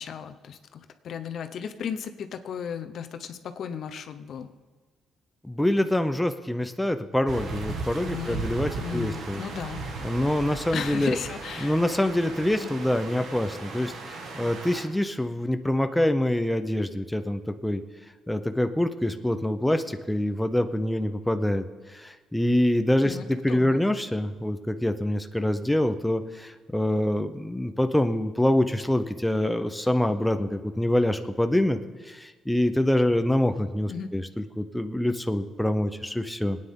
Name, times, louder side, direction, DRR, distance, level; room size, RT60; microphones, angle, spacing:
voice 1, 0.0-4.5 8.0-8.5 8.8-9.9 10.7-11.8 12.5-12.7 23.0-23.8 33.9-34.1, left 7 dB, 65° left, 8 dB, 0.9 m, -35 dB
voice 2, 5.4-9.4 10.0-11.2 11.6-17.8 18.3-36.6, left 1 dB, 5° left, 8 dB, 0.7 m, -25 dB
sound 1, 7.3-14.8, right 3 dB, 70° right, 2.0 m, -36 dB
20.0 x 9.3 x 3.8 m, 1.4 s
cardioid pair, 90°, 0 cm